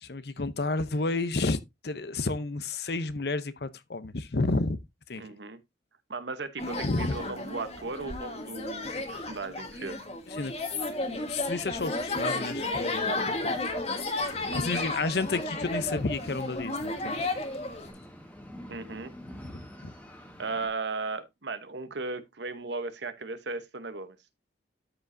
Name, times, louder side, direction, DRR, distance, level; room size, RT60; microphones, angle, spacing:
voice 1, 0.0-1.6 1.8-4.8 5.1-5.2 6.8-7.2 10.4-10.5 11.3-13.5 14.5-17.3, left 3 dB, 60° left, 0.7 m, -31 dB
voice 2, 5.2-5.6 6.1-10.1 14.5-14.9 18.7-19.1 20.4-24.2, right 3 dB, 75° right, 1.0 m, -36 dB
sound 1, 6.6-17.9, left 2 dB, 35° left, 1.4 m, -33 dB
sound 2, 14.2-20.7, equal, 10° left, 1.5 m, -47 dB
12.5 x 4.9 x 2.7 m
head